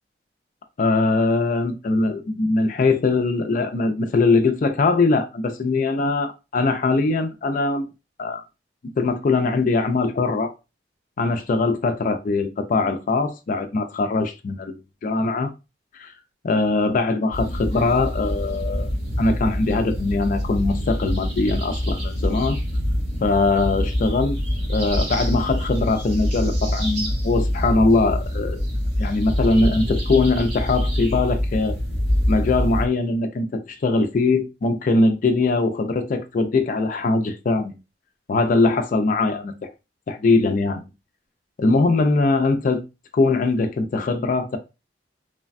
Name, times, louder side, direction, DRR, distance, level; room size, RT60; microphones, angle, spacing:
voice 1, 0.8-7.9 8.2-8.4 9.0-10.5 11.2-15.5 15.9-16.1 16.4-18.9 19.2-22.6 23.2-24.4 24.7-28.6 29.0-31.7 32.3-37.7 38.3-39.5 40.1-40.9 41.6-42.8 43.1-44.6, left 3 dB, 45° left, 0.4 m, -21 dB
sound 1, 17.3-32.9, equal, 65° right, 1.4 m, -25 dB
3.2 x 2.1 x 2.4 m
head